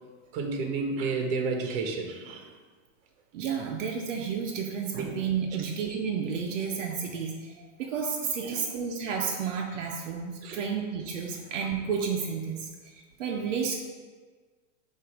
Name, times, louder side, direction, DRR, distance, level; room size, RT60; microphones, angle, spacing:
voice 1, 0.3-2.5 4.9-5.2 8.4-8.7 10.4-10.6, right 4 dB, 50° right, 3 dB, 1.1 m, -31 dB
voice 2, 3.3-13.8, right 6 dB, 80° right, 1 dB, 0.8 m, -31 dB
7.6 x 2.8 x 4.8 m, 1.4 s
supercardioid pair, 150°, 37 cm